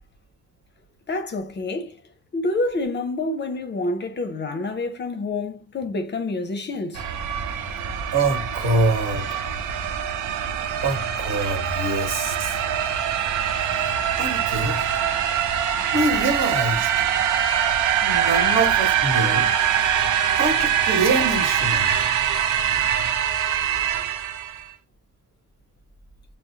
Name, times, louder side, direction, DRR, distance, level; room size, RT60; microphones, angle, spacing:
voice 1, 1.1-2.0 2.3-7.1, left 2 dB, 35° left, 0.6 m, -27 dB
sound 1, 7.0-24.6, right 9 dB, 75° right, 0.6 m, -23 dB
voice 2, 8.1-9.4 10.8-12.6 13.5-13.8 14.2-14.9 15.9-16.9 17.8-19.5 20.3-21.9, right 2 dB, 55° right, 1.3 m, -25 dB
5.9 x 2.0 x 2.7 m
cardioid pair, 90°, 30 cm